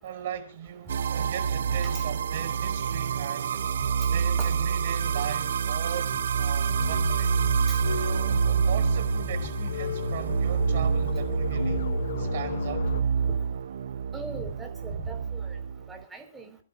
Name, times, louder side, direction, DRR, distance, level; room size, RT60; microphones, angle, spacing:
voice 1, 0.0-3.7 4.1-7.3 8.0-11.9 12.2-12.9, right 10 dB, 55° right, 5.3 m, -38 dB
sound 1, 0.9-16.0, right 7 dB, 70° right, 0.6 m, -27 dB
sound 2, 6.8-13.0, left 7 dB, 70° left, 0.6 m, -34 dB
voice 2, 14.1-15.6 15.9-16.6, right 3 dB, 5° right, 4.5 m, -40 dB
28.5 x 11.5 x 2.5 m
hypercardioid pair, 160°, 0 cm